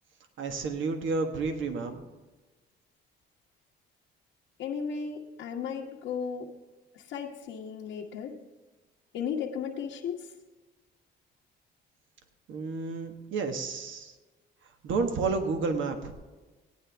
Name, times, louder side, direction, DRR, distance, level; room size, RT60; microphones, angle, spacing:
voice 1, 0.4-2.0 12.5-14.1 14.8-16.1, right 4 dB, 75° right, 6 dB, 1.4 m, -30 dB
voice 2, 4.6-6.5 6.9-8.3 9.1-10.3, left 6 dB, 90° left, -4 dB, 1.2 m, -35 dB
17.0 x 9.6 x 3.5 m, 1.2 s
cardioid pair, 90°, 20 cm